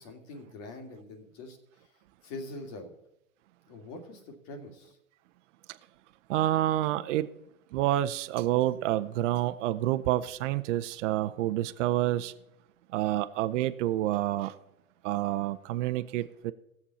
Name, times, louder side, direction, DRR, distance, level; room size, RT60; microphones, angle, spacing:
voice 1, 0.0-1.9 2.2-2.9 3.7-5.0, left 2 dB, 50° left, 2.6 m, -44 dB
voice 2, 6.3-7.3 7.7-12.3 12.9-14.5 15.0-16.5, right 14 dB, 60° right, 0.7 m, -28 dB
18.5 x 7.2 x 4.2 m
hypercardioid pair, 100°, 41 cm